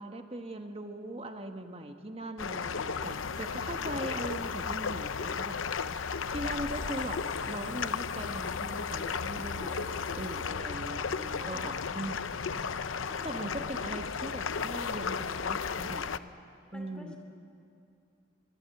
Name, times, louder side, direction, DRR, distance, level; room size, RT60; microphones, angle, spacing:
voice 1, 0.0-5.6 5.9-12.5 13.2-16.2 16.7-17.1, right 1 dB, 30° right, 6 dB, 1.2 m, -40 dB
sound 1, 2.4-16.2, left 5 dB, 80° left, 0.7 m, -34 dB
sound 2, 3.0-10.5, left 7 dB, 35° left, 4.2 m, -57 dB
sound 3, 6.3-7.9 8.7-8.9 14.7-14.8, right 1 dB, 70° right, 1.2 m, -48 dB
voice 2, 9.6-10.9 11.3-12.0 12.8-13.6 16.7-17.2, left 1 dB, 5° left, 2 dB, 2.8 m, -50 dB
24.5 x 21.0 x 7.7 m, 2.5 s
head